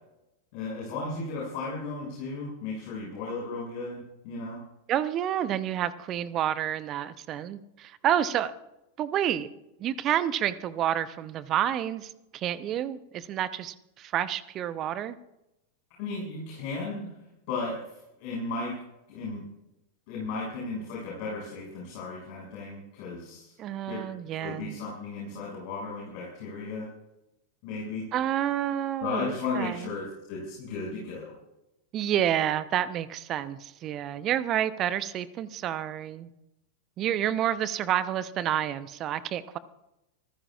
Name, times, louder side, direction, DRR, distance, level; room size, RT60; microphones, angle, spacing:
voice 1, 0.5-4.6 16.0-17.1 17.5-17.8 18.2-18.8 19.1-19.4 20.1-23.5 23.9-24.0 24.3-26.9 27.6-28.0 29.0-31.3, left 3 dB, 45° left, -4 dB, 6.1 m, -35 dB
voice 2, 4.9-8.5 9.0-9.5 9.8-15.1 23.6-24.8 28.1-29.9 31.9-36.3 37.0-39.6, right 11 dB, 35° right, 16 dB, 0.8 m, -29 dB
26.0 x 15.0 x 2.4 m, 0.89 s
figure-of-eight pair, 90°, 0 cm